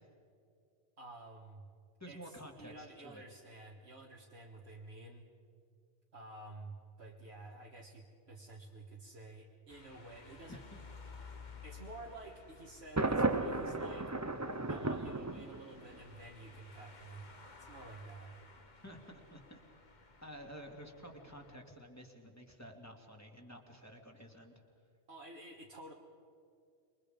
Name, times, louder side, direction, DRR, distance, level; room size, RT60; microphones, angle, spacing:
voice 1, 1.0-1.7 2.1-5.3 6.1-10.6 11.6-14.1 14.7-17.3 17.6-18.3 25.1-25.9, right 2 dB, 70° right, -2 dB, 1.9 m, -51 dB
voice 2, 2.0-3.2 10.5-10.8 18.8-19.6 20.2-24.6, equal, 15° left, 1 dB, 2.5 m, -51 dB
sound 1, 9.7-21.6, left 4 dB, 40° left, 1.5 m, -56 dB
Thunder, 13.0-15.9, right 2 dB, 15° right, 0.7 m, -34 dB
27.5 x 23.0 x 5.2 m, 2.4 s
omnidirectional pair, 1.2 m